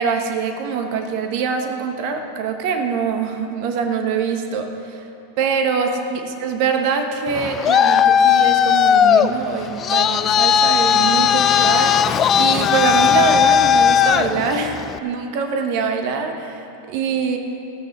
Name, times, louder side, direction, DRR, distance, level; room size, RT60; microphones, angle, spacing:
voice 1, 0.0-5.0 5.4-17.4, right 5 dB, 55° right, 5 dB, 1.3 m, -24 dB
Traffic noise roadway noise, 7.3-15.0, left 8 dB, 30° left, 0.4 m, -16 dB
17.5 x 6.3 x 6.1 m, 2.7 s
hypercardioid pair, 110°, 0 cm